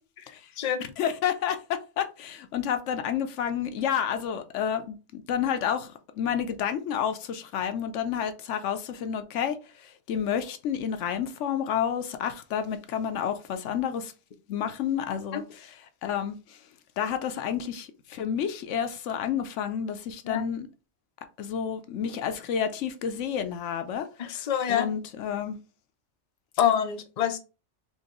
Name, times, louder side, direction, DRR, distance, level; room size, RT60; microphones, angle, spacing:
voice 1, 1.0-14.1 14.5-16.6 17.0-20.7 21.4-25.6, left 8 dB, 80° left, 1.0 m, -30 dB
voice 2, 24.2-24.9 26.6-27.4, left 9 dB, 45° left, 0.6 m, -26 dB
4.5 x 2.8 x 2.9 m
omnidirectional pair, 1.2 m